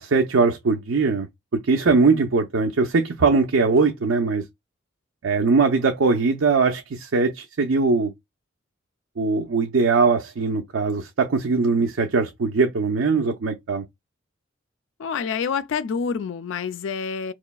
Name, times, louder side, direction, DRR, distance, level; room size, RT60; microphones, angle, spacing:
voice 1, 0.0-4.4 5.2-8.1 9.2-13.8, right 4 dB, 80° right, 0.6 m, -21 dB
voice 2, 15.0-17.3, left 6 dB, 70° left, 0.4 m, -27 dB
4.8 x 3.0 x 2.2 m
head